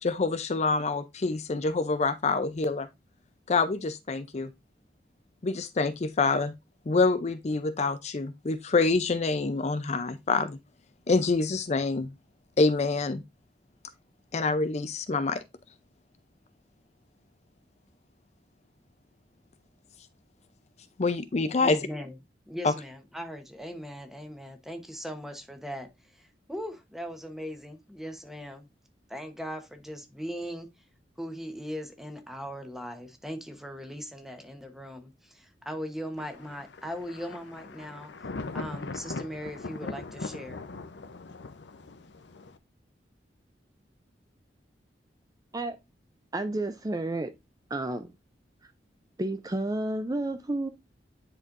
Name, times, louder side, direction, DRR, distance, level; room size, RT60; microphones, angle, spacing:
voice 1, 0.0-2.9 3.5-4.5 5.4-6.5 6.9-10.6 11.1-12.1 12.6-13.2 14.3-15.4 21.0-21.8 22.6-22.7, left 3 dB, 40° left, 0.5 m, -26 dB
voice 2, 21.6-22.1 22.5-28.7 29.1-30.7 31.2-40.6, equal, ahead, 1.0 m, -39 dB
Thunder, 36.2-42.6, left 3 dB, 85° left, 0.7 m, -40 dB
voice 3, 46.3-47.3 47.7-48.1 49.2-50.7, right 2 dB, 20° right, 0.5 m, -31 dB
9.9 x 4.3 x 2.5 m
head